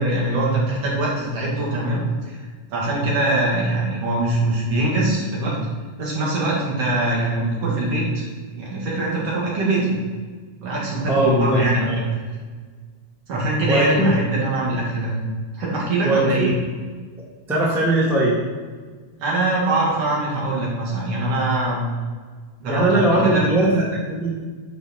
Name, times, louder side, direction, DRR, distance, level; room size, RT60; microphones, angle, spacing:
voice 1, 0.0-2.0 2.3-5.6 6.0-10.0 10.6-11.9 13.3-15.1 15.5-16.5 19.2-21.8 22.6-23.4, right 2 dB, 55° right, -5 dB, 2.9 m, -23 dB
voice 2, 11.1-12.0 13.7-14.1 16.0-16.5 17.5-18.4 22.7-24.3, right 1 dB, ahead, -4 dB, 0.6 m, -19 dB
9.8 x 4.9 x 4.4 m, 1.5 s
omnidirectional pair, 3.5 m